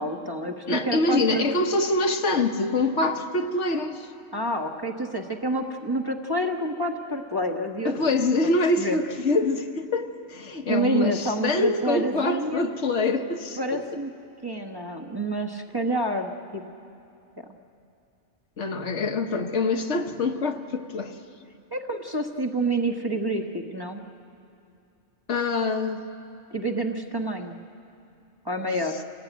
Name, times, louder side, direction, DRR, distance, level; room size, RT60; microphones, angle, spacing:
voice 1, 0.0-1.4 4.3-8.1 8.8-9.0 10.7-12.7 13.6-14.1 14.4-16.6 17.4-17.5 21.7-24.0 26.5-27.6 28.4-29.0, right 1 dB, 20° right, 1.1 m, -28 dB
voice 2, 0.7-4.1 7.8-13.8 18.6-21.2 25.3-26.1, left 2 dB, 65° left, 1.4 m, -25 dB
28.0 x 18.5 x 9.2 m
omnidirectional pair, 1.3 m